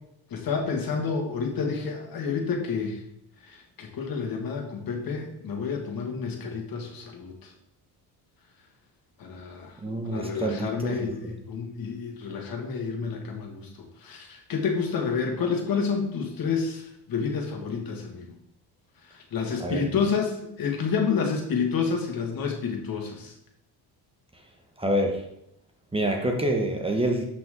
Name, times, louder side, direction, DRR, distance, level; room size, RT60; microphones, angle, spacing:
voice 1, 0.3-3.0 3.4-7.5 9.2-9.8 10.0-18.4 19.0-23.3, left 5 dB, 60° left, 2 dB, 2.1 m, -29 dB
voice 2, 9.8-11.1 19.6-19.9 24.8-25.2 25.9-27.3, right 1 dB, 15° right, 2 dB, 1.2 m, -26 dB
11.5 x 5.8 x 3.9 m, 0.79 s
cardioid pair, 115°, 41 cm